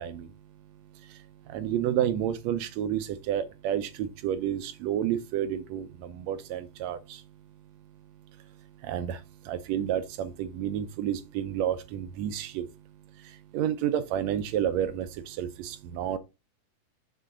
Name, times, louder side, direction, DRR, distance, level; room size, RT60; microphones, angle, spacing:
voice 1, 0.0-16.2, right 10 dB, 80° right, 1.7 m, -31 dB
7.5 x 3.9 x 3.8 m
omnidirectional pair, 3.4 m